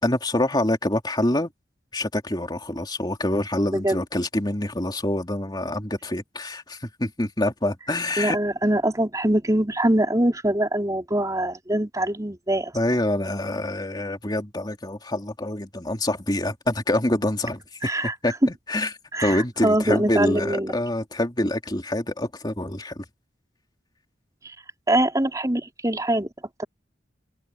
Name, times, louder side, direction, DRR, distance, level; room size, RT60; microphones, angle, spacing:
voice 1, 0.0-1.5 1.9-8.4 12.7-17.9 18.2-18.9 19.2-23.0, left 1 dB, 25° left, 2.9 m, -26 dB
voice 2, 8.2-12.7 17.8-18.1 19.1-20.8 24.4-24.5 24.9-26.3 26.6-26.7, right 1 dB, 20° right, 3.7 m, -23 dB
open air
head